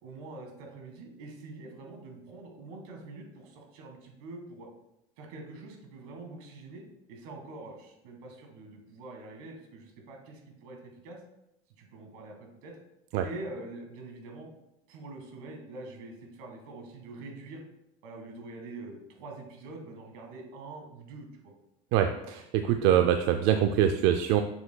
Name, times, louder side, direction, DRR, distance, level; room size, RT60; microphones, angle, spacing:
voice 1, 0.0-4.7 5.2-11.2 11.8-12.8 13.2-14.5 14.9-17.6 18.0-21.5, right 2 dB, 75° right, 2 dB, 1.6 m, -45 dB
voice 2, 21.9-24.4, right 10 dB, 60° right, 7 dB, 0.4 m, -24 dB
6.9 x 6.7 x 2.2 m, 0.87 s
cardioid pair, 155°, 19 cm